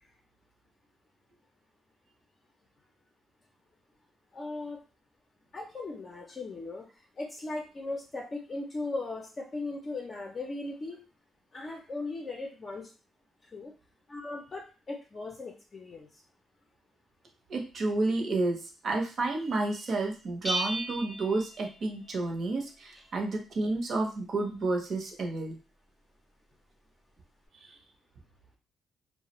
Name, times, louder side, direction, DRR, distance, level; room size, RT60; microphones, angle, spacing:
voice 1, 4.3-4.8 5.5-6.8 7.2-11.0 11.5-12.9 13.4-13.7 14.1-16.2, left 2 dB, 35° left, 0 dB, 0.5 m, -38 dB
voice 2, 17.5-25.6 27.6-27.8, right 2 dB, 55° right, 2 dB, 0.7 m, -31 dB
Bell, 20.4-22.3, right 2 dB, 10° right, 0.6 m, -35 dB
2.4 x 2.1 x 2.9 m, 0.33 s
cardioid pair, 90°, 0 cm